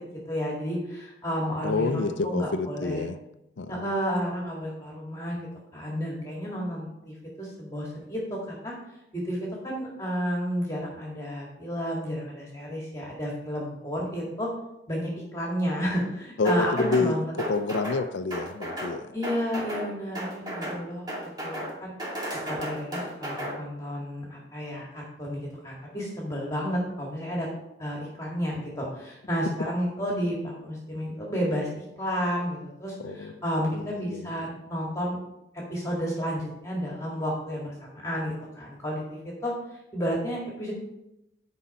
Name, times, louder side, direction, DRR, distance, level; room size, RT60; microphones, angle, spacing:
voice 1, 0.3-3.0 3.7-5.4 5.7-8.7 9.1-14.5 14.9-17.3 19.1-21.1 21.4-21.9 22.3-27.5 27.8-35.2 35.7-39.5 39.9-40.7, equal, 15° left, -3 dB, 2.0 m, -31 dB
voice 2, 1.6-3.2 3.6-3.9 16.4-19.1 33.0-33.3 33.7-34.4, left 3 dB, 85° left, 9 dB, 0.5 m, -28 dB
sound 1, 16.5-17.1 17.4-18.0 18.3-18.9 19.2-19.9 20.1-20.8 21.1-21.7 22.0-23.5, right 1 dB, 20° right, 2.5 m, -34 dB
10.0 x 5.4 x 5.5 m, 0.87 s
head